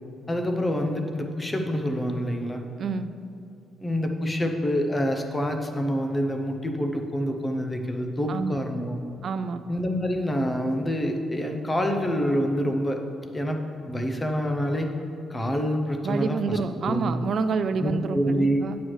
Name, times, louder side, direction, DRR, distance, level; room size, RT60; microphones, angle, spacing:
voice 1, 0.3-2.6 3.8-9.0 9.7-13.0 13.3-13.6 13.9-14.9 15.3-17.1 17.8-18.7, equal, 20° left, 4 dB, 0.7 m, -27 dB
voice 2, 2.8-3.1 8.3-8.6 9.2-9.6 16.0-18.8, right 5 dB, 55° right, 11 dB, 0.3 m, -28 dB
9.2 x 6.2 x 3.2 m, 2.5 s
cardioid pair, 90°, 0 cm